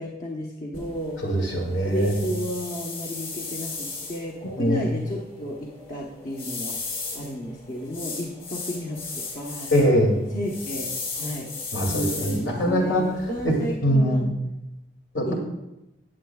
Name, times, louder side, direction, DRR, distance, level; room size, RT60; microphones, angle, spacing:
voice 1, 0.0-1.2 1.8-6.8 7.1-9.7 10.3-11.5 11.8-14.2 15.3-15.4, equal, 45° left, -2 dB, 1.1 m, -33 dB
sound 1, 0.7-13.7, left 4 dB, 25° left, 3.2 m, -36 dB
voice 2, 1.2-2.2 4.4-4.9 9.7-10.3 11.7-13.1 13.4-13.6 13.8-14.3 15.1-15.3, equal, 75° left, 0 dB, 2.5 m, -22 dB
18.0 x 7.8 x 2.3 m, 0.93 s
head